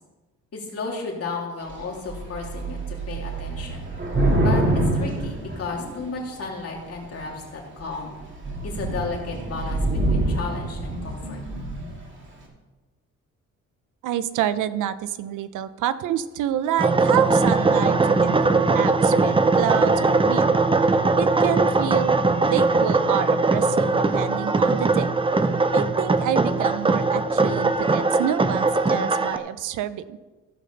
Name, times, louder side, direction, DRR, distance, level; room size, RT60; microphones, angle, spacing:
voice 1, 0.5-3.9 4.4-8.1 8.6-11.4, left 4 dB, 50° left, -1 dB, 3.2 m, -33 dB
Thunder / Rain, 1.7-6.2 6.9-7.4 7.8-8.0 8.2-12.0, right 1 dB, 40° right, 2.9 m, -26 dB
voice 2, 14.0-20.6 21.2-22.2 22.5-25.1 25.7-30.2, right 11 dB, 85° right, 14 dB, 0.6 m, -28 dB
sound 1, 16.8-29.4, right 3 dB, 15° right, 0.7 m, -20 dB
15.0 x 5.1 x 6.8 m, 1.2 s
cardioid pair, 90°, 30 cm